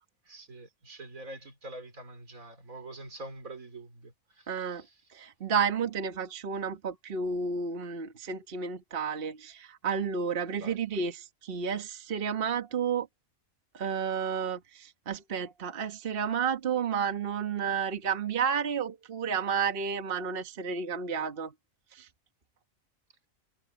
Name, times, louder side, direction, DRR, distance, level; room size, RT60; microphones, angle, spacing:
voice 1, 0.3-4.9 10.5-10.8, right 2 dB, 80° right, 4.3 m, -45 dB
voice 2, 4.5-4.8 5.1-13.1 13.7-21.5 21.9-22.1, right 6 dB, 45° right, 1.4 m, -31 dB
omnidirectional pair, 1.4 m